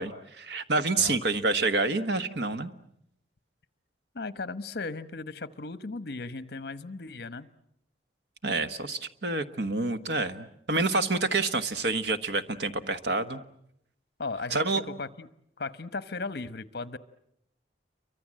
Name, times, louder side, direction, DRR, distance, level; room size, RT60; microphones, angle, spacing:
voice 1, 0.0-2.7 8.4-13.4 14.5-14.8, right 3 dB, 70° right, 10 dB, 1.3 m, -28 dB
voice 2, 4.1-7.5 14.2-15.3 15.6-17.0, left 3 dB, 60° left, 14 dB, 1.0 m, -36 dB
29.5 x 24.0 x 7.6 m, 0.75 s
head